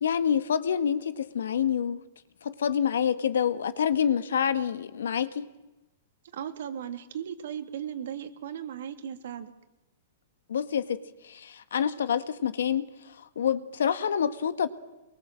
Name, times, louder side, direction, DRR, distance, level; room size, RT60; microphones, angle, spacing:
voice 1, 0.0-2.0 2.4-5.5 10.5-14.7, left 8 dB, 90° left, 13 dB, 1.7 m, -27 dB
voice 2, 6.3-9.5, right 9 dB, 70° right, 8 dB, 2.7 m, -37 dB
23.5 x 22.5 x 7.7 m, 1.0 s
hypercardioid pair, 155°, 0 cm